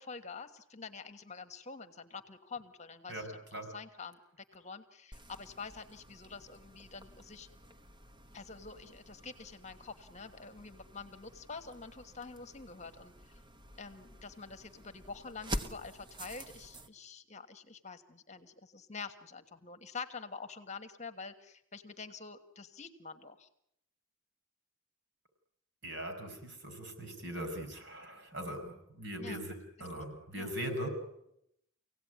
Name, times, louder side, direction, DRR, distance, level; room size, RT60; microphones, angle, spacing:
voice 1, 0.0-3.5 3.7-4.2 4.5-7.5 8.3-13.1 13.8-23.5 29.2-29.4 29.8-30.0 30.4-30.5, left 4 dB, 35° left, 8 dB, 1.4 m, -47 dB
voice 2, 3.1-3.7 25.8-30.9, equal, 60° right, 6 dB, 5.7 m, -40 dB
sound 1, 5.1-16.9, equal, 20° right, 1.2 m, -47 dB
26.0 x 17.5 x 9.5 m, 0.78 s
head